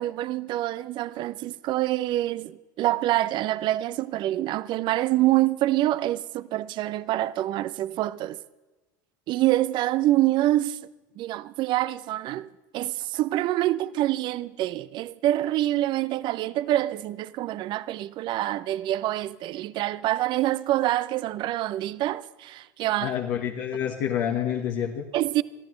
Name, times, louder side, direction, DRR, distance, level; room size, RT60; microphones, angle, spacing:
voice 1, 0.0-8.4 9.3-10.8 11.2-23.1 25.1-25.4, right 15 dB, 50° right, 0.6 m, -26 dB
voice 2, 23.0-25.0, left 9 dB, 65° left, 1.5 m, -28 dB
24.5 x 14.0 x 3.2 m
hypercardioid pair, 90°, 10 cm